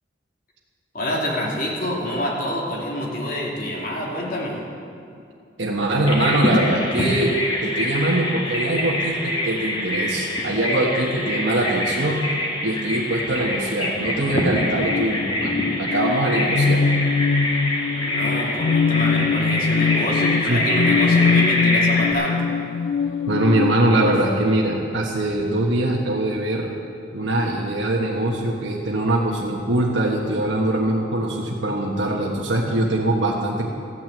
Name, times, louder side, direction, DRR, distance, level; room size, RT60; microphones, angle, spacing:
voice 1, 0.9-4.6 17.9-22.5, left 1 dB, 50° left, -3 dB, 2.7 m, -27 dB
voice 2, 5.6-7.3 7.6-12.2 12.6-16.8 19.2-19.3 20.4-20.6 23.3-26.7 27.1-33.7, right 1 dB, 90° right, -2 dB, 1.4 m, -22 dB
Bird vocalization bird call bird song, 6.1-22.1, left 1 dB, 25° left, 2.1 m, -25 dB
sound 1, 14.8-24.3, left 5 dB, 75° left, 0.4 m, -22 dB
14.0 x 9.2 x 7.9 m, 2.5 s
head